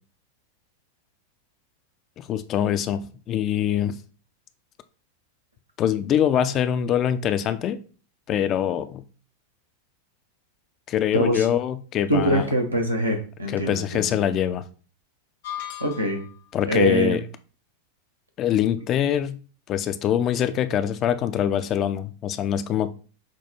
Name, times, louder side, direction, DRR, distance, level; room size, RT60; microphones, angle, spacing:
voice 1, 2.2-4.0 5.8-7.8 8.3-9.0 10.9-12.5 13.5-14.6 16.5-17.2 18.4-19.4 19.7-22.9, left 10 dB, 30° left, 12 dB, 0.3 m, -24 dB
voice 2, 11.1-11.5 12.1-14.2 15.8-16.2 16.7-17.2, right 1 dB, 85° right, 2 dB, 0.7 m, -23 dB
sound 1, 15.4-16.4, left 11 dB, 55° left, 0.7 m, -36 dB
5.9 x 2.2 x 2.8 m, 0.38 s
figure-of-eight pair, 90°, 0 cm